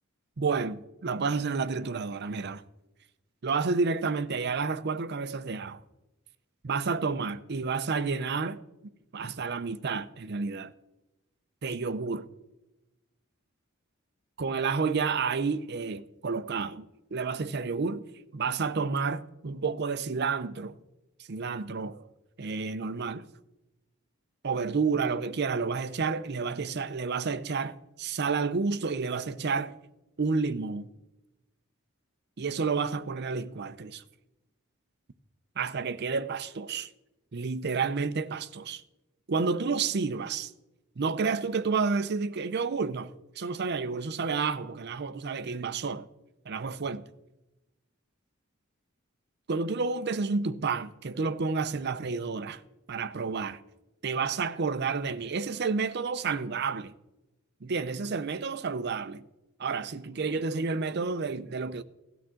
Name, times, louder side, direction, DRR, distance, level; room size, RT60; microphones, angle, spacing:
voice 1, 0.4-2.6 3.4-5.8 6.6-8.6 9.1-10.7 11.6-12.3 14.4-18.0 18.3-20.8 21.3-22.0 22.4-23.2 24.4-29.8 30.2-30.9 32.4-34.0 35.6-36.9 37.3-38.8 39.3-40.5 41.0-46.1 46.5-47.0 49.5-52.6 52.9-53.6 54.0-56.9 57.6-59.2 59.6-61.8, right 4 dB, 50° right, 0.6 m, -30 dB
17.5 x 12.0 x 3.7 m
head